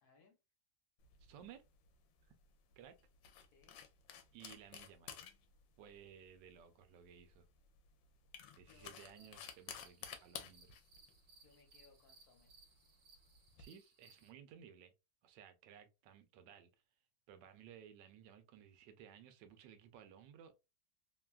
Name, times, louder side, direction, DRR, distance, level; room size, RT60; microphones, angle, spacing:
voice 1, 0.0-0.4 3.5-3.8 8.6-9.5 11.4-12.5, left 4 dB, 65° left, 1.3 m, -68 dB
sound 1, 1.0-13.6, left 8 dB, 85° left, 1.2 m, -55 dB
voice 2, 1.2-1.6 2.2-2.3 2.8-3.0 4.3-5.2 5.8-7.5 8.6-10.8 13.6-14.9 15.2-16.7 17.3-20.6, right 8 dB, 85° right, 1.3 m, -58 dB
sound 2, 9.0-14.3, right 4 dB, 55° right, 0.7 m, -66 dB
3.2 x 2.3 x 2.3 m
omnidirectional pair, 1.9 m